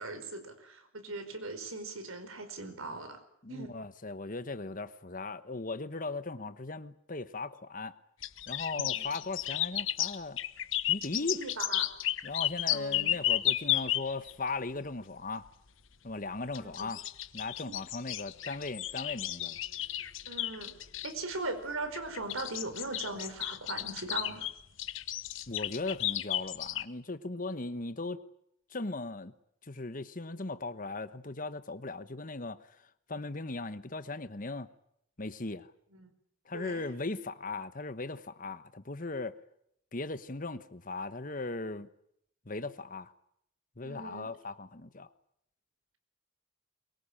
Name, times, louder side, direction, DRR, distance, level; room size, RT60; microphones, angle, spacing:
voice 1, 0.0-3.2 3.5-3.7 8.8-9.2 11.1-11.9 12.7-13.1 16.5-16.9 17.7-17.8 20.2-20.7 21.0-24.5 35.9-36.1 36.5-36.9 43.8-44.3, right 2 dB, 85° right, 4.9 m, -40 dB
voice 2, 3.4-8.0 8.5-10.4 10.9-11.4 12.2-15.5 16.0-17.0 17.3-19.6 25.5-28.2 28.7-29.3 29.6-32.8 33.1-34.7 35.2-35.7 36.5-39.4 39.9-41.9 42.4-43.1 43.8-45.1, left 3 dB, 40° left, 1.2 m, -38 dB
sound 1, 8.2-14.3 16.5-21.1 21.9-26.8, left 13 dB, 70° left, 1.1 m, -33 dB
23.0 x 23.0 x 8.8 m
head